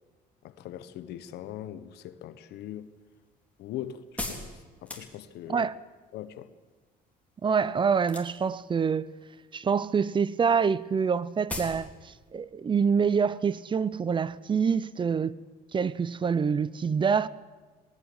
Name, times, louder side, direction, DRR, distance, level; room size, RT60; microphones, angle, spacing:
voice 1, 0.4-2.9 3.6-4.4 4.8-5.6 6.1-6.5, left 11 dB, 80° left, 1.3 m, -40 dB
sound 1, 2.6-5.6 8.0-8.6 8.9-9.5 9.8-10.0 10.2-10.3 10.5-10.6 11.0-11.1 11.5-11.8 12.1-12.2, left 2 dB, 10° left, 4.0 m, -38 dB
voice 2, 7.4-9.1 9.5-15.4 15.7-17.3, right 6 dB, 30° right, 0.6 m, -26 dB
19.5 x 19.0 x 8.0 m
cardioid pair, 110°, 17 cm